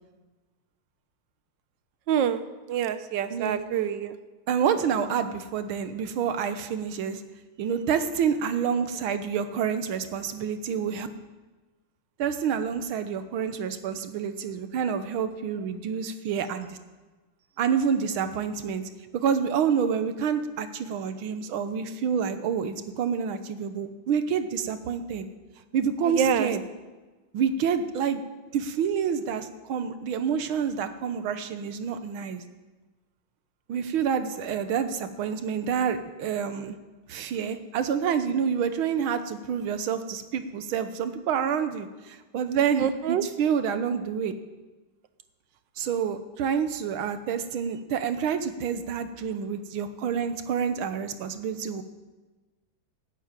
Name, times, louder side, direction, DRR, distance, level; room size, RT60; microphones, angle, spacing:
voice 1, 2.1-2.4 2.7-4.1 26.2-26.5 42.8-43.2, right 9 dB, 70° right, 11 dB, 1.4 m, -26 dB
voice 2, 3.3-3.6 4.5-7.2 7.6-11.1 12.2-16.8 17.6-25.3 25.7-26.6 27.3-28.2 28.5-32.4 33.7-36.8 37.1-44.3 45.8-51.8, right 7 dB, 85° right, 10 dB, 1.8 m, -28 dB
12.0 x 9.5 x 9.0 m, 1.2 s
omnidirectional pair, 2.2 m